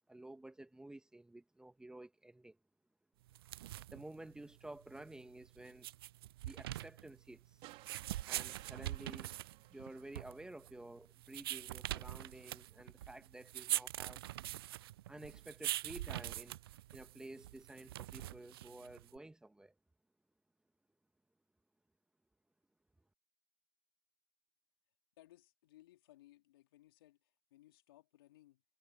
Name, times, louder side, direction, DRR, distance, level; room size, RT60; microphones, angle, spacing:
voice 1, 0.1-2.6 3.9-5.9 6.4-7.6 8.3-9.3 9.7-14.3 15.1-16.6 16.9-19.7, right 1 dB, 5° right, 1.8 m, -52 dB
sound 1, 3.3-19.2, right 15 dB, 65° right, 0.4 m, -44 dB
sound 2, 7.6-10.9 12.3-12.4, right 19 dB, 45° right, 5.3 m, -60 dB
voice 2, 25.2-28.6, left 15 dB, 65° left, 3.5 m, -64 dB
hypercardioid pair, 100°, 13 cm